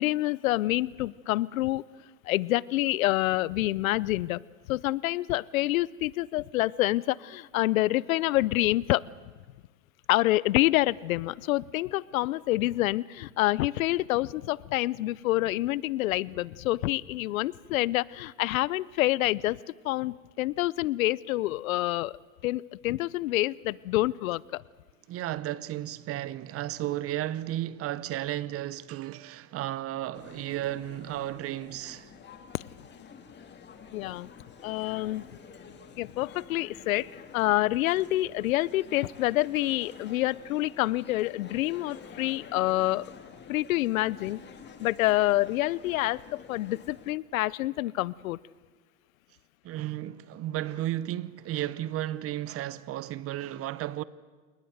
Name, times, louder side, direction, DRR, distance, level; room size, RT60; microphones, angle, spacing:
voice 1, 0.0-1.8 2.2-4.4 4.7-9.1 10.1-19.6 19.8-22.1 22.4-24.6 32.5-32.6 33.9-34.3 34.6-35.3 36.0-43.1 43.5-44.4 44.8-48.4, left 17 dB, 85° left, 0.7 m, -27 dB
voice 2, 25.1-32.1 49.6-54.0, right 14 dB, 35° right, 0.8 m, -33 dB
sound 1, 30.1-47.1, left 6 dB, 25° left, 2.4 m, -49 dB
28.0 x 19.5 x 8.0 m
supercardioid pair, 120°, 40 cm